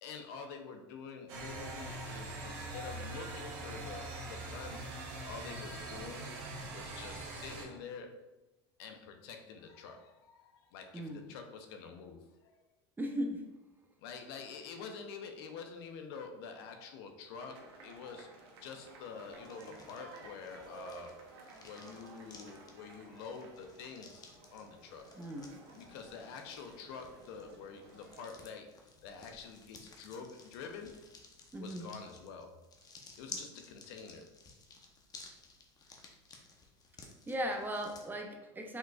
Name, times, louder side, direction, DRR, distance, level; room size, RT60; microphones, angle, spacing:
voice 1, 0.0-4.9 5.2-6.3 6.7-8.2 8.8-12.6 14.0-18.3 18.6-21.1 21.6-25.1 25.7-28.7 29.0-30.9 31.6-32.6 33.2-34.2, left 5 dB, 70° left, 5 dB, 0.7 m, -47 dB
sound 1, 1.3-7.6, right 2 dB, 60° right, 1.4 m, -43 dB
voice 2, 10.9-11.3 13.0-13.4 25.2-25.5 31.5-31.9 33.3-33.4 37.3-38.8, equal, 15° right, 3 dB, 0.7 m, -38 dB
sound 2, 17.4-28.4, right 3 dB, 80° right, 1.0 m, -55 dB
sound 3, 18.9-38.0, left 3 dB, 30° left, 0.9 m, -55 dB
5.3 x 3.7 x 2.4 m, 1.0 s
supercardioid pair, 100°, 13 cm